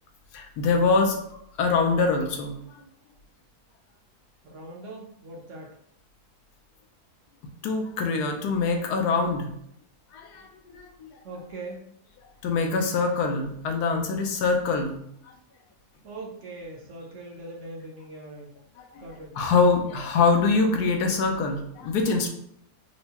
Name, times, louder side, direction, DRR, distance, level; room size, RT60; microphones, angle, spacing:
voice 1, 0.3-2.8 7.6-9.5 10.1-11.2 12.4-15.0 18.8-19.0 19.4-22.3, left 4 dB, 85° left, 3 dB, 1.2 m, -24 dB
voice 2, 4.4-5.7 11.2-11.8 12.7-13.1 16.0-18.6 19.0-19.5 19.8-19.9, right 2 dB, 60° right, -2 dB, 0.9 m, -41 dB
4.5 x 2.1 x 2.8 m, 0.71 s
omnidirectional pair, 1.7 m